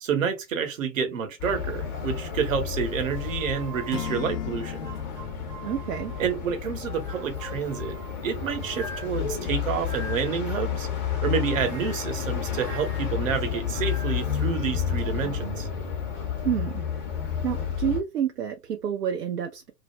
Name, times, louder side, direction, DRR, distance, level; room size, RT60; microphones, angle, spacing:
voice 1, 0.0-4.9 6.2-8.0 8.2-10.9 11.2-15.7, right 7 dB, 50° right, 1.0 m, -29 dB
sound 1, 1.4-18.0, left 8 dB, 30° left, 0.7 m, -31 dB
sound 2, 3.1-6.3 6.8-10.5 11.3-14.3, right 2 dB, 10° right, 0.4 m, -44 dB
Acoustic guitar / Strum, 3.9-7.0, left 10 dB, 75° left, 0.6 m, -38 dB
voice 2, 5.6-6.1 16.4-16.8 17.4-19.7, right 9 dB, 70° right, 0.6 m, -29 dB
2.4 x 2.1 x 3.0 m
figure-of-eight pair, 110°, 49 cm